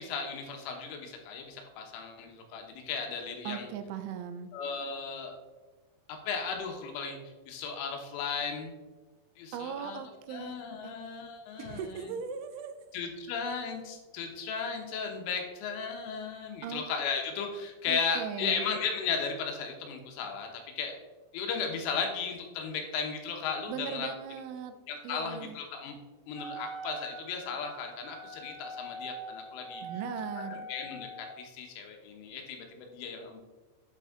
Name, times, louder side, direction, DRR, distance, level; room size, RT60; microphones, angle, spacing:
voice 1, 0.0-3.7 4.5-5.4 6.1-7.2 7.5-8.8 9.4-10.0 10.3-12.1 12.9-20.5 20.8-21.0 21.3-24.1 24.9-26.0 26.3-29.8 30.7-33.4, left 5 dB, 90° left, 3 dB, 3.6 m, -35 dB
voice 2, 3.5-4.5 9.5-10.6 10.8-11.0 11.6-12.8 16.6-16.8 17.9-18.7 23.7-24.7 25.0-25.6 29.8-30.7, right 7 dB, 85° right, 9 dB, 3.0 m, -39 dB
Wind instrument woodwind instrument, 26.3-31.4, right 1 dB, 60° right, 2.4 m, -43 dB
10.5 x 4.5 x 3.6 m, 1.2 s
omnidirectional pair, 5.5 m